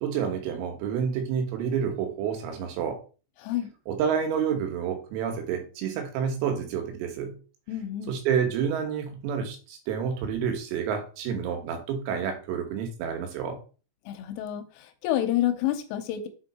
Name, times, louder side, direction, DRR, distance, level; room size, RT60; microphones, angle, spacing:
voice 1, 0.0-3.0 3.9-7.4 8.1-13.6, right 7 dB, 90° right, 4 dB, 4.0 m, -29 dB
voice 2, 3.4-3.7 7.7-8.1 14.1-16.3, left 12 dB, 85° left, 8 dB, 3.2 m, -29 dB
7.5 x 3.7 x 4.2 m, 0.36 s
omnidirectional pair, 5.9 m